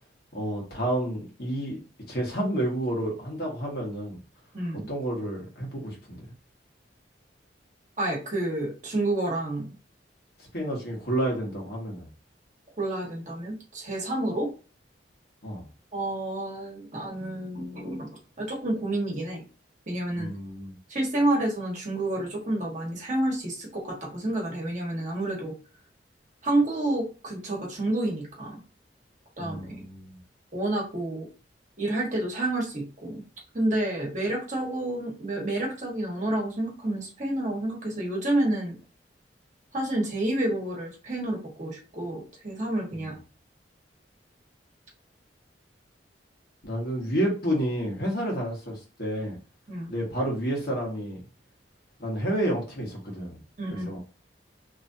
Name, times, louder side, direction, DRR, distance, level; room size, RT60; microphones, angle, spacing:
voice 1, 0.3-1.8 2.1-4.2 4.9-6.2 10.5-12.1 15.4-15.7 20.1-20.7 29.4-30.2 42.9-43.1 46.6-49.4 49.9-51.2 52.0-53.4 53.8-54.0, right 1 dB, 60° left, 1.4 m, -30 dB
voice 2, 4.5-4.9 8.0-9.7 12.8-14.5 15.9-18.1 18.4-19.4 19.9-20.3 20.9-25.5 26.4-28.6 29.4-29.8 30.5-31.3 31.8-33.2 33.5-38.8 39.7-43.2 49.7-49.9 53.6-53.9, right 1 dB, 45° right, 1.2 m, -29 dB
3.0 x 2.5 x 2.6 m
head